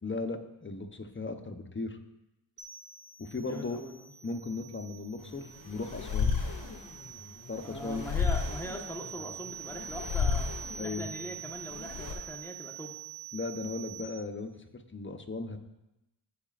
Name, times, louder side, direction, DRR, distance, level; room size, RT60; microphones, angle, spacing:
voice 1, 0.0-2.0 3.2-3.8 4.2-6.3 7.5-8.0 10.8-11.1 13.3-15.6, left 3 dB, 25° left, 6 dB, 0.8 m, -37 dB
sound 1, 2.6-14.0, right 8 dB, 70° right, 2.2 m, -46 dB
voice 2, 3.4-4.1 7.6-10.5 10.8-13.0, equal, 5° left, 0 dB, 1.3 m, -41 dB
sound 2, 5.2-12.1, left 5 dB, 50° left, 2.4 m, -34 dB
15.0 x 5.0 x 2.5 m, 0.93 s
cardioid pair, 55°, 49 cm